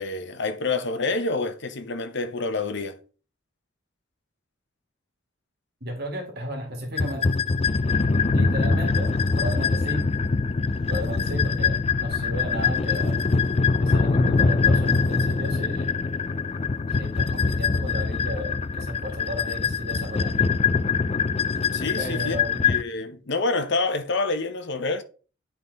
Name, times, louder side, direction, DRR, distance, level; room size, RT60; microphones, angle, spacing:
voice 1, 0.0-3.0 21.7-25.0, left 3 dB, 55° left, 0.8 m, -27 dB
voice 2, 5.8-7.3 8.3-10.1 10.9-13.3 13.8-15.9 16.9-20.4 22.0-22.6, equal, 50° right, 1.9 m, -34 dB
sound 1, 7.0-22.8, left 4 dB, 30° left, 0.3 m, -23 dB
9.1 x 3.8 x 3.9 m
head